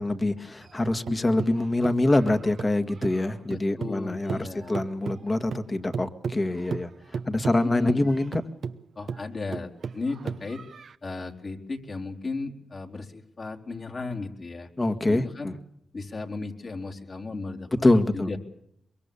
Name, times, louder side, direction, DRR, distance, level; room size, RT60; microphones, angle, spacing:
voice 1, 0.0-6.9 7.3-8.4 14.8-15.5 17.8-18.3, left 2 dB, 30° left, 8 dB, 2.0 m, -25 dB
sound 1, 0.6-4.0 4.3-11.0, right 6 dB, 70° right, 1.0 m, -36 dB
voice 2, 3.5-4.7 7.6-8.1 9.0-10.6 11.0-14.7 15.1-15.5 15.9-17.9 18.1-18.4, left 3 dB, 50° left, 3 dB, 3.6 m, -35 dB
23.5 x 22.5 x 7.0 m, 0.77 s
cardioid pair, 60°, 0 cm